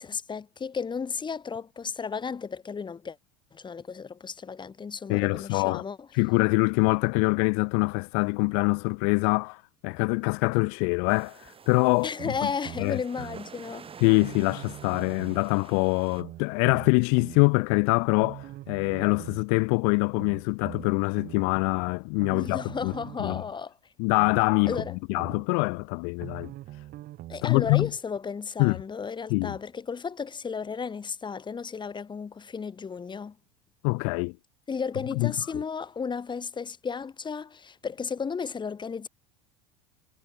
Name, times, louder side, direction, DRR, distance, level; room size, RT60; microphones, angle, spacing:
voice 1, 0.0-3.2 3.5-6.0 12.0-13.9 22.3-23.7 24.7-25.0 27.3-33.4 34.7-39.1, left 5 dB, 25° left, 2.1 m, -34 dB
voice 2, 5.1-5.8 6.1-12.3 12.8-13.0 14.0-22.9 23.2-23.4 24.0-24.8 25.1-26.5 27.4-27.9 28.6-28.8 29.3-29.6 33.8-34.4 35.2-35.6, left 40 dB or more, 65° left, 0.9 m, -24 dB
sound 1, 11.1-16.2, right 6 dB, 30° right, 2.5 m, -48 dB
sound 2, 12.2-13.4 14.2-15.5 16.2-17.4 18.2-19.4 20.2-21.4 22.2-23.4 24.2-25.4 26.2-27.5 28.2-28.3, right 15 dB, 50° right, 4.8 m, -42 dB
hypercardioid pair, 90°, 20 cm